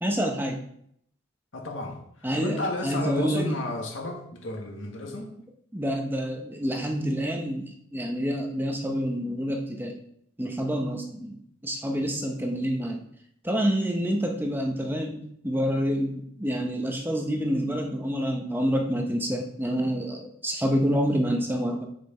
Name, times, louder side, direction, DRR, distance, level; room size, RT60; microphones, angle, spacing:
voice 1, 0.0-0.6 2.2-3.6 5.7-10.0 10.4-11.4 11.6-13.0 13.4-21.9, equal, 10° right, 0.9 m, -27 dB
voice 2, 1.5-5.3, left 2 dB, 80° left, 1.7 m, -33 dB
7.6 x 6.5 x 4.4 m
head